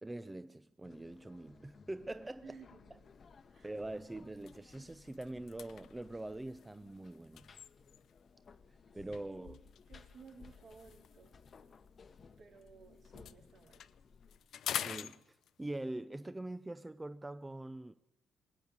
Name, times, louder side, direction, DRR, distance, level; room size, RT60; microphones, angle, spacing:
voice 1, 0.0-2.4 3.6-7.5 8.9-9.6 14.7-17.9, right 2 dB, 15° right, 0.5 m, -44 dB
sound 1, 0.8-14.4, left 5 dB, 45° left, 0.9 m, -59 dB
voice 2, 2.4-3.1 3.5-3.7 9.2-11.4 12.4-13.8, right 5 dB, 60° right, 3.7 m, -57 dB
sound 2, 3.2-3.4 3.8-4.0 4.3-8.3 9.1-12.7 13.0-15.8, left 10 dB, 70° left, 0.5 m, -46 dB
19.5 x 8.0 x 8.8 m
cardioid pair, 90°, 0 cm